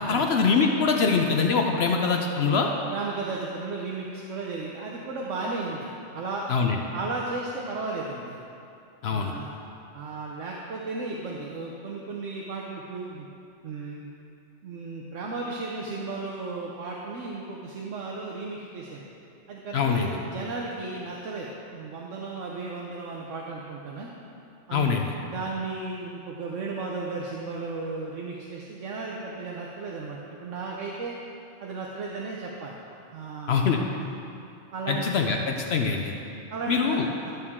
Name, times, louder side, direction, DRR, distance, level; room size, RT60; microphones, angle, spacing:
voice 1, 0.0-2.7 6.5-6.8 9.0-9.3 19.7-20.1 24.7-25.1 33.5-33.8 34.9-36.1 36.7-37.1, left 5 dB, 60° left, 2 dB, 0.8 m, -23 dB
voice 2, 2.9-5.9 6.1-6.5 6.9-8.4 9.1-9.5 9.9-13.3 13.6-14.1 14.6-19.1 19.5-24.1 24.7-31.2 31.6-32.7 33.1-33.7 34.7-35.1 36.5-37.3, right 3 dB, 75° right, -2 dB, 1.1 m, -34 dB
12.5 x 6.6 x 3.6 m, 2.7 s
omnidirectional pair, 1.3 m